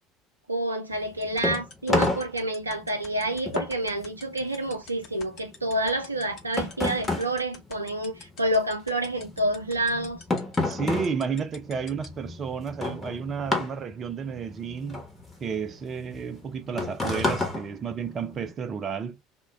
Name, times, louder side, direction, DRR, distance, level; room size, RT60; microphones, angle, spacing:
voice 1, 0.5-10.2, right 1 dB, 85° right, 0.5 m, -28 dB
sound 1, 0.9-8.6 8.8-18.5, left 2 dB, 20° left, 1.0 m, -31 dB
sound 2, 1.2-12.1, left 6 dB, 45° left, 0.7 m, -44 dB
voice 2, 10.6-15.0 15.4-19.2, right 6 dB, 35° right, 0.4 m, -32 dB
2.2 x 2.1 x 3.4 m
figure-of-eight pair, 65°, 0 cm